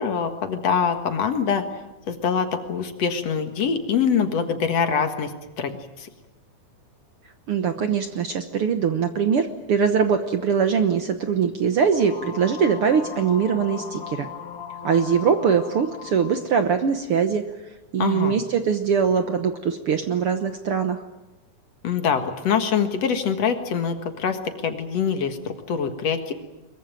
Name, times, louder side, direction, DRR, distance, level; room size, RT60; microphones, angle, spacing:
voice 1, 0.0-1.6 2.1-6.1 18.0-18.4 21.8-26.3, left 6 dB, 55° left, 7 dB, 2.5 m, -24 dB
voice 2, 7.5-14.3 14.8-17.4 17.9-21.0, right 6 dB, 60° right, 8 dB, 1.6 m, -22 dB
sound 1, 11.9-16.4, left 6 dB, 35° left, 1.5 m, -38 dB
23.0 x 22.5 x 9.1 m, 1.0 s
omnidirectional pair, 3.6 m